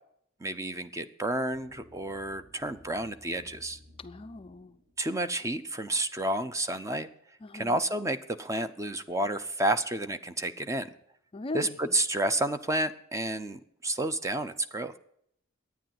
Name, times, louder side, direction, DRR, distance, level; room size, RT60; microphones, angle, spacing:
voice 1, 0.4-3.8 5.0-7.1 7.5-10.9 11.5-14.9, right 1 dB, 15° right, 11 dB, 0.6 m, -30 dB
sound 1, 1.5-6.6, left 1 dB, 55° right, 2.7 m, -57 dB
voice 2, 4.0-4.8 7.4-7.8 11.3-12.0, left 2 dB, 25° left, 11 dB, 0.4 m, -39 dB
11.5 x 9.3 x 7.7 m, 0.70 s
head